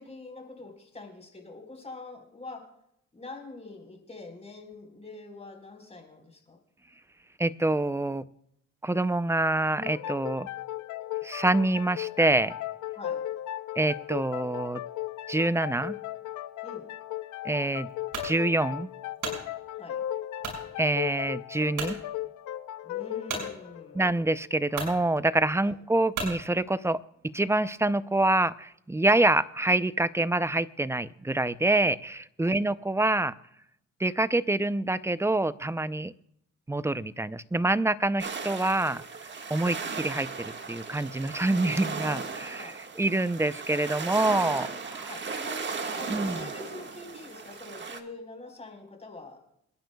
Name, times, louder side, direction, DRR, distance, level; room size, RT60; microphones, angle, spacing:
voice 1, 0.0-2.7 3.1-6.6 12.9-13.2 16.6-16.8 19.7-20.0 22.8-24.0 25.6-25.8 32.4-32.6 42.5-42.8 45.1-49.4, left 3 dB, 20° left, 3 dB, 4.4 m, -45 dB
voice 2, 7.4-8.3 8.8-10.5 11.2-12.5 13.8-14.8 15.3-16.0 17.4-17.9 18.2-18.9 20.8-22.0 23.9-27.0 27.2-33.3 34.0-36.1 36.7-39.0 39.5-45.1 46.1-46.5, right 2 dB, 10° right, 15 dB, 0.5 m, -26 dB
sound 1, 9.8-25.2, left 13 dB, 75° left, 0.7 m, -37 dB
sound 2, 18.1-18.3 18.9-19.4 20.4-20.6 21.2-21.3 21.7-22.0 23.3-23.5 24.3-24.4 24.7-25.0 26.1-26.4, right 4 dB, 75° right, 6.0 m, -34 dB
sound 3, 38.2-48.0, right 5 dB, 40° right, 1.6 m, -36 dB
28.0 x 10.5 x 2.3 m, 0.75 s
cardioid pair, 90°, 30 cm